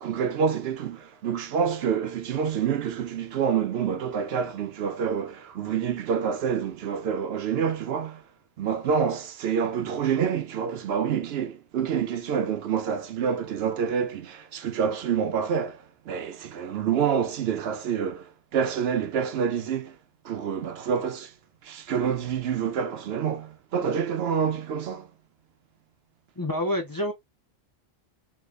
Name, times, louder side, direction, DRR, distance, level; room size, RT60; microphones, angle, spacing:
voice 1, 0.0-8.2 8.6-20.0 20.2-21.3 21.6-25.1, right 7 dB, 75° right, 0.8 m, -27 dB
voice 2, 26.4-27.1, left 1 dB, 25° left, 0.6 m, -27 dB
3.2 x 3.1 x 2.3 m
omnidirectional pair, 1.1 m